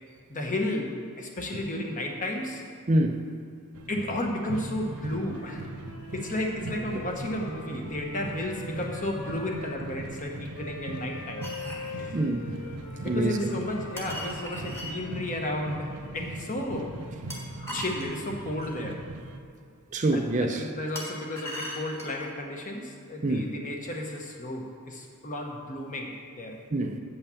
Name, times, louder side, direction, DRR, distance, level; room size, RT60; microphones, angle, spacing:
voice 1, 0.3-2.6 3.9-5.7 6.1-11.5 11.8-12.2 12.9-16.9 17.7-19.0 20.1-26.6, left 1 dB, 35° left, 1 dB, 1.1 m, -33 dB
voice 2, 2.9-3.3 12.1-12.5 13.0-13.4 17.7-17.8 19.9-20.7 23.2-23.5 26.7-27.0, right 1 dB, 35° right, 5 dB, 0.5 m, -26 dB
sound 1, 3.7-19.4, right 2 dB, 85° right, 0.7 m, -40 dB
Wind instrument woodwind instrument, 4.8-9.8 10.5-15.5, left 3 dB, 70° left, 0.8 m, -44 dB
sound 2, 11.4-11.9 14.0-14.9 17.3-18.7 20.9-22.3, equal, 10° left, 1.4 m, -39 dB
8.0 x 5.5 x 7.0 m, 2.4 s
head